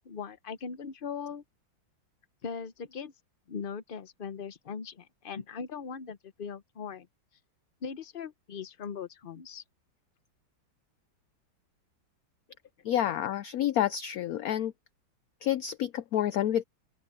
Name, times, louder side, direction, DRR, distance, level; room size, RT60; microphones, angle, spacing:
voice 1, 0.0-1.4 2.4-3.1 3.5-7.1 7.8-9.6, left 6 dB, 55° left, 0.6 m, -39 dB
voice 2, 12.8-14.7 15.4-16.6, left 11 dB, 75° left, 0.8 m, -29 dB
open air
omnidirectional pair, 2.1 m